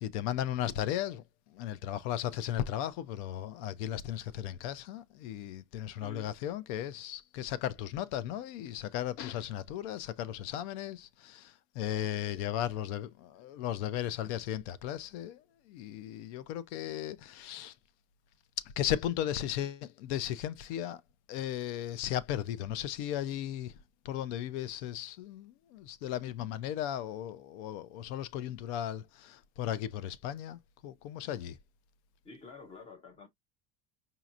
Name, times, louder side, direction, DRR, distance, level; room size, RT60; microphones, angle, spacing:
voice 1, 0.0-17.7 18.6-21.0 21.3-23.8 24.0-31.6, left 11 dB, 75° left, 0.6 m, -36 dB
voice 2, 6.0-6.3 12.1-12.9 32.2-33.3, left 4 dB, 20° left, 0.4 m, -51 dB
5.1 x 2.8 x 2.4 m
cardioid pair, 175°, 35 cm